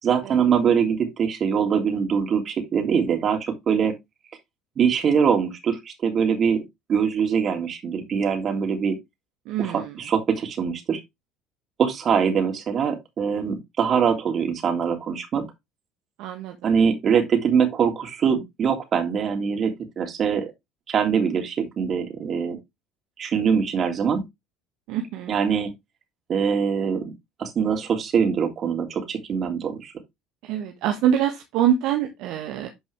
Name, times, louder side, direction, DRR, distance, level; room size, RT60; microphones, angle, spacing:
voice 1, 0.0-4.0 4.8-6.6 6.9-9.0 9.6-11.0 11.8-15.4 16.6-20.5 20.9-22.6 23.2-24.2 25.3-25.7 26.3-27.1 27.4-29.9, right 7 dB, 45° right, 3.2 m, -23 dB
voice 2, 9.5-10.0 16.2-16.6 24.9-25.4 30.4-32.7, right 9 dB, 65° right, 1.3 m, -25 dB
11.5 x 5.4 x 3.4 m
hypercardioid pair, 70°, 0 cm